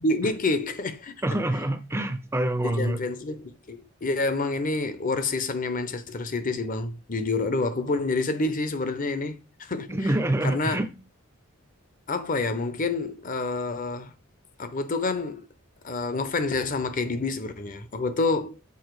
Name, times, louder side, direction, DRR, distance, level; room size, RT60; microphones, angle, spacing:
voice 1, 0.0-1.1 2.6-10.0 10.4-10.8 12.1-14.1 14.6-15.5 15.8-18.6, left 3 dB, 40° left, 0.8 m, -28 dB
voice 2, 1.2-3.0 9.9-10.9, right 1 dB, 10° right, 0.5 m, -26 dB
7.2 x 4.3 x 4.7 m
head